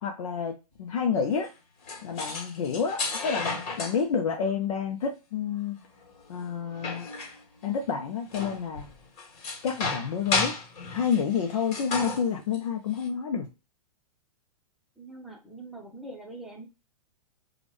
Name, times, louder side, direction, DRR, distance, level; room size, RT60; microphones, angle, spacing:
voice 1, 0.0-1.5 2.0-5.8 6.3-7.1 7.6-8.9 9.6-10.5 10.9-13.5, left 6 dB, 55° left, 3 dB, 0.7 m, -29 dB
sound 1, 1.4-1.5 1.8-4.0 5.8-7.9 8.2-12.6 13.0-13.1, left 4 dB, 40° left, 1.8 m, -33 dB
voice 2, 15.0-16.7, right 2 dB, ahead, -1 dB, 1.0 m, -43 dB
5.0 x 2.4 x 3.1 m, 0.28 s
figure-of-eight pair, 105°, 20 cm